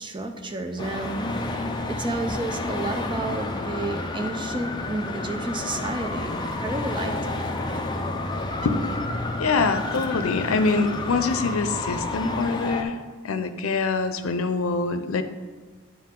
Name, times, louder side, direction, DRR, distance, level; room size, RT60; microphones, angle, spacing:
voice 1, 0.0-7.4, right 2 dB, 25° right, 5 dB, 0.6 m, -31 dB
Traffic noise roadway noise, 0.8-12.8, left 2 dB, 20° left, 0.5 m, -30 dB
voice 2, 9.4-13.0 13.2-15.2, left 4 dB, 90° left, 10 dB, 0.5 m, -24 dB
9.6 x 4.7 x 3.7 m, 1.4 s
head